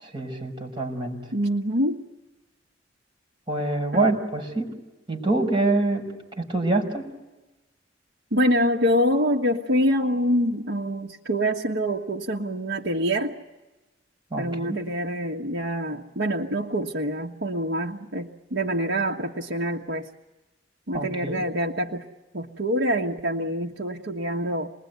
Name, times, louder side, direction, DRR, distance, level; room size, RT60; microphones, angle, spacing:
voice 1, 0.0-1.2 3.5-4.7 5.1-6.1 6.4-7.1 14.3-14.8 20.9-21.4, right 2 dB, 25° right, 2 dB, 5.8 m, -25 dB
voice 2, 1.3-2.0 3.9-4.1 8.3-13.3 14.4-20.1 20.9-22.1 22.3-24.7, equal, 80° right, -1 dB, 1.5 m, -25 dB
27.5 x 21.0 x 9.5 m, 1.1 s
head